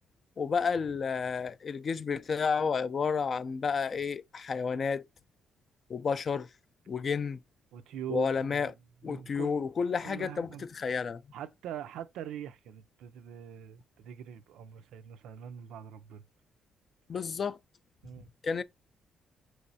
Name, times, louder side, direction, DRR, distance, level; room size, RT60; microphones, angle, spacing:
voice 1, 0.4-5.0 5.9-6.5 6.9-7.4 8.1-8.7 9.0-11.2 17.1-17.6 18.4-18.6, left 5 dB, 45° left, 0.3 m, -31 dB
voice 2, 7.7-8.7 9.0-9.6 10.0-10.7 11.3-16.2 18.0-18.3, right 10 dB, 85° right, 0.4 m, -43 dB
4.6 x 3.1 x 2.6 m
cardioid pair, 90°, 0 cm